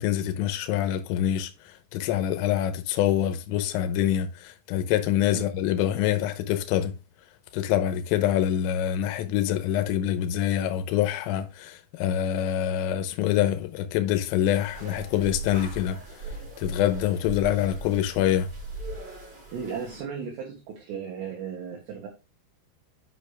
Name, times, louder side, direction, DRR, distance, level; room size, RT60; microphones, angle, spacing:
voice 1, 0.0-7.0 7.5-16.0 16.6-18.5, left 11 dB, 80° left, 3.4 m, -25 dB
sound 1, 14.5-20.0, right 2 dB, 25° right, 3.4 m, -39 dB
voice 2, 19.5-22.1, right 6 dB, 70° right, 3.1 m, -35 dB
8.3 x 5.9 x 3.4 m
omnidirectional pair, 5.9 m